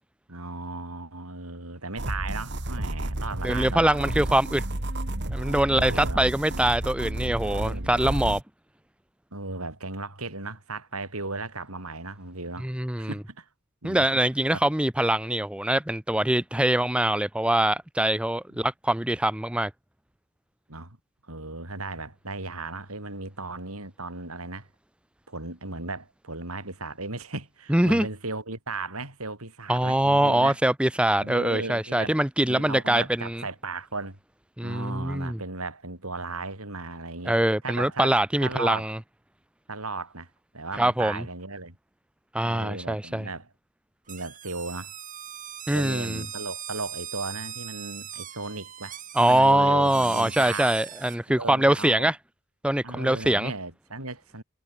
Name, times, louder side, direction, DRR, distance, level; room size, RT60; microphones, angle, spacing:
voice 1, 0.3-4.0 5.7-6.2 7.4-8.1 9.3-12.7 13.0-13.5 13.8-14.2 14.5-14.6 18.5-18.6 20.7-21.0 21.3-24.7 25.3-30.6 31.2-32.1 32.5-34.2 34.6-37.4 37.6-38.1 38.4-38.9 39.7-40.3 40.5-41.8 42.4-43.5 44.1-44.9 45.7-50.7 51.3-52.1 52.8-54.4, right 3 dB, 75° right, 7.8 m, -36 dB
sound 1, 2.0-8.4, right 1 dB, 50° right, 2.4 m, -31 dB
voice 2, 3.4-4.6 5.3-8.4 12.6-13.1 13.8-19.7 27.7-28.1 29.7-33.4 34.6-35.4 37.3-39.0 40.7-41.2 42.3-43.3 45.7-46.2 49.1-52.2 52.6-53.5, right 1 dB, 5° right, 0.6 m, -23 dB
sound 2, 44.1-51.2, right 10 dB, 35° right, 4.2 m, -40 dB
head